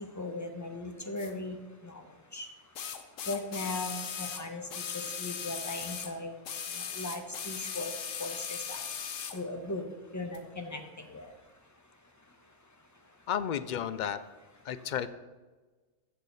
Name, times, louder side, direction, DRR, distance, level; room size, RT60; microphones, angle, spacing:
voice 1, 0.0-1.6 1.8-2.0 2.3-2.5 3.3-4.7 4.9-6.3 6.7-7.9 8.2-8.9 9.3-9.8 10.1-10.8 11.1-11.3, left 2 dB, 15° left, 4 dB, 1.0 m, -38 dB
sound 1, 1.2-1.3 2.8-6.1 6.4-9.4 10.3-10.4, left 7 dB, 90° left, 1.2 m, -38 dB
voice 2, 13.3-14.2 14.6-15.1, left 9 dB, 65° left, 13 dB, 0.4 m, -32 dB
15.0 x 6.5 x 4.1 m, 1.3 s
omnidirectional pair, 1.3 m